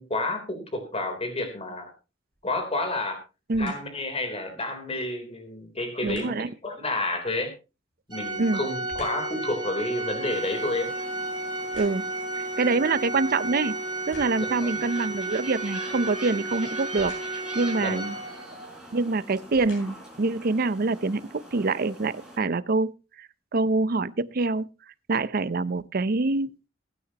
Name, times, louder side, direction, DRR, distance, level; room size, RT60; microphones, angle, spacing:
voice 1, 0.0-1.9 2.4-3.2 3.6-6.4 6.6-7.5 8.1-10.9 14.4-14.8 17.8-18.0, left 2 dB, 35° left, 3.5 m, -30 dB
sound 1, 2.3-2.7 3.5-4.0 6.0-6.5 7.9-9.4 9.8-12.3 13.0-13.1 13.9-14.6 16.9-17.5 18.5-18.7 19.3-20.2 20.8-20.9, left 2 dB, 80° left, 6.8 m, -49 dB
voice 2, 6.0-6.5 8.4-8.6 11.8-12.0 12.4-13.8 14.1-18.1 18.9-22.9 23.2-24.7 25.1-26.6, right 3 dB, 50° right, 0.6 m, -26 dB
Organ, 8.1-18.7, right 2 dB, 25° right, 2.1 m, -33 dB
sound 2, 10.3-22.4, right 1 dB, 5° right, 5.1 m, -45 dB
21.5 x 9.5 x 2.9 m
head